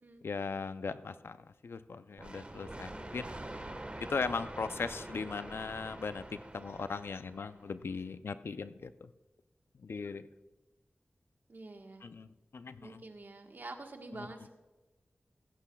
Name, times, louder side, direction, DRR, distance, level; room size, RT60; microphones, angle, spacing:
voice 1, 0.2-3.3 4.0-9.1 9.8-10.3 12.0-13.0, left 4 dB, 75° left, 12 dB, 0.5 m, -39 dB
sound 1, 2.2-7.8, right 1 dB, 30° right, 1.3 m, -45 dB
voice 2, 11.5-12.0 12.8-14.5, right 2 dB, 55° right, 4 dB, 1.4 m, -47 dB
15.5 x 14.5 x 2.3 m, 1.1 s
wide cardioid pair, 65°, 4 cm